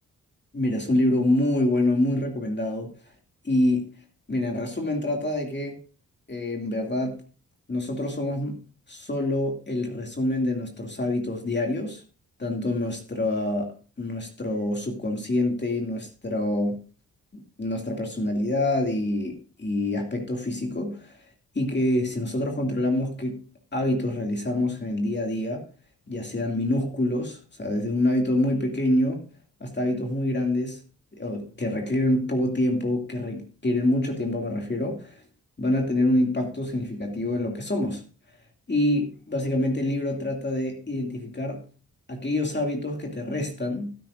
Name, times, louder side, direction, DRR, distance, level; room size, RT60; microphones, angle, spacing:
voice 1, 0.5-2.9 3.4-3.9 4.3-5.8 6.3-7.1 7.7-8.6 8.9-12.0 12.4-13.7 14.0-16.8 17.6-21.2 21.5-23.5 23.7-25.7 26.1-29.3 29.6-30.8 31.1-35.2 35.6-38.0 38.7-41.6 42.1-43.9, left 1 dB, 30° left, 2 dB, 2.5 m, -26 dB
15.5 x 9.3 x 2.6 m, 0.37 s
cardioid pair, 65°, 34 cm